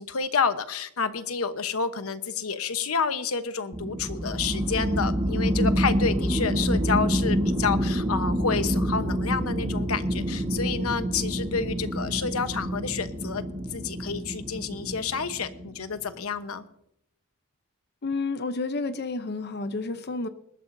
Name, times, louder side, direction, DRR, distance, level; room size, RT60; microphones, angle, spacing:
voice 1, 0.0-13.4 13.7-16.6, left 5 dB, 90° left, 10 dB, 1.1 m, -29 dB
sound 1, 3.7-15.8, equal, 20° right, 1.5 m, -27 dB
voice 2, 18.0-20.3, left 3 dB, 50° left, 10 dB, 0.7 m, -30 dB
20.5 x 13.0 x 2.7 m, 0.76 s
head